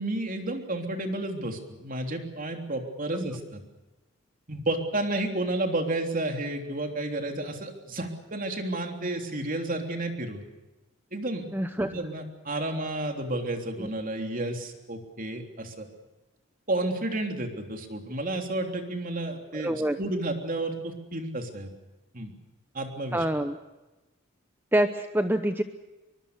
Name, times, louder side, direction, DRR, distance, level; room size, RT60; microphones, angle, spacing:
voice 1, 0.0-3.6 4.5-10.4 11.1-11.4 11.8-15.9 16.7-21.7 22.1-22.3 22.7-23.3, right 2 dB, 40° right, 4 dB, 3.5 m, -31 dB
voice 2, 11.5-11.9 13.8-13.9 19.5-20.0 23.1-23.6 24.7-25.6, right 1 dB, 10° right, 8 dB, 0.9 m, -26 dB
23.5 x 23.5 x 6.8 m, 1.1 s
head